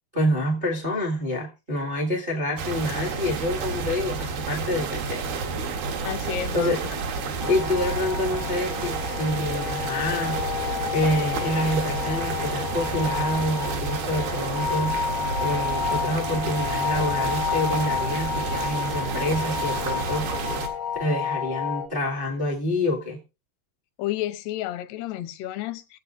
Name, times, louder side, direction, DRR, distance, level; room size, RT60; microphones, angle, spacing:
voice 1, 0.1-5.2 6.5-6.8 7.5-10.5 10.9-14.9 15.4-20.3 21.0-23.2, left 1 dB, 35° right, 0.9 m, -27 dB
sound 1, 2.6-20.7, right 4 dB, 70° right, 3.4 m, -30 dB
voice 2, 6.0-6.8 24.0-26.0, left 13 dB, 85° left, 2.8 m, -31 dB
sound 2, 7.4-21.9, left 8 dB, 70° left, 1.4 m, -30 dB
23.0 x 7.8 x 2.6 m
omnidirectional pair, 4.6 m